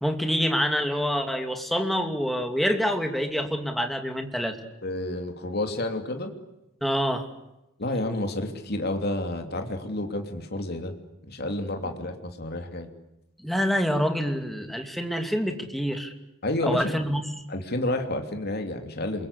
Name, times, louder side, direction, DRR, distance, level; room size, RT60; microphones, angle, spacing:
voice 1, 0.0-4.5 6.8-7.3 11.8-11.9 13.4-16.1 16.6-17.2, equal, ahead, 5 dB, 2.6 m, -26 dB
voice 2, 4.8-6.3 7.8-10.9 11.2-12.9 16.4-17.0 17.5-19.3, left 1 dB, 50° left, 5 dB, 3.0 m, -30 dB
27.0 x 23.0 x 8.4 m, 0.93 s
head